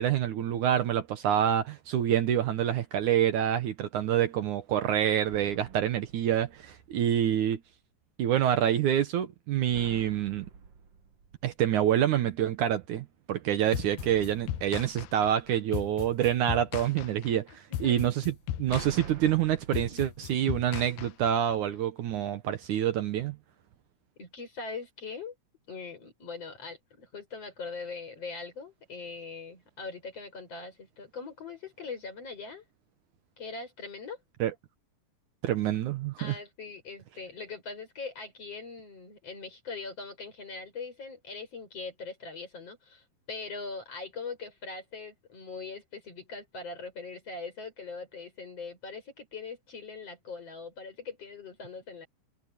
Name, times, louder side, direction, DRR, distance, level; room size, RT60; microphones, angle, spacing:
voice 1, 0.0-7.6 8.2-10.5 11.4-18.1 18.6-23.4 34.4-34.5 35.4-36.3, right 10 dB, 70° right, 2.4 m, -27 dB
sound 1, 5.3-7.2 9.7-12.1 14.0-16.2 18.2-21.3, right 6 dB, 55° right, 2.4 m, -49 dB
sound 2, 13.7-21.5, left 12 dB, 85° left, 2.6 m, -37 dB
voice 2, 17.7-18.1 24.2-25.3 25.7-32.6 33.4-34.2 36.2-52.1, left 4 dB, 45° left, 7.6 m, -41 dB
omnidirectional pair, 3.9 m